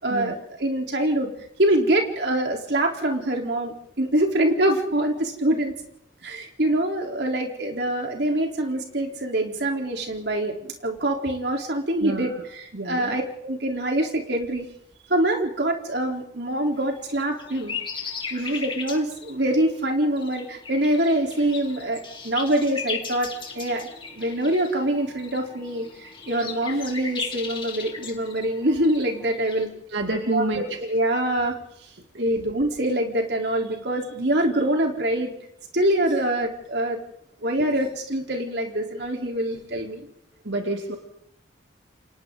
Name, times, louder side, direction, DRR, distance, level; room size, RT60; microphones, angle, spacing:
voice 1, 0.0-1.3 1.6-5.7 6.2-14.7 15.1-17.8 18.3-23.3 23.5-23.9 24.1-29.7 30.3-30.4 30.8-31.5 32.2-35.3 35.7-37.0 37.4-40.1, right 1 dB, 65° right, 2 dB, 3.9 m, -24 dB
voice 2, 12.0-12.4 12.7-13.2 18.4-18.6 29.9-30.8 40.4-41.0, right 2 dB, 85° right, 2 dB, 2.5 m, -28 dB
sound 1, 16.7-29.6, left 5 dB, 30° left, 2.7 m, -37 dB
29.5 x 25.0 x 4.0 m, 0.73 s
head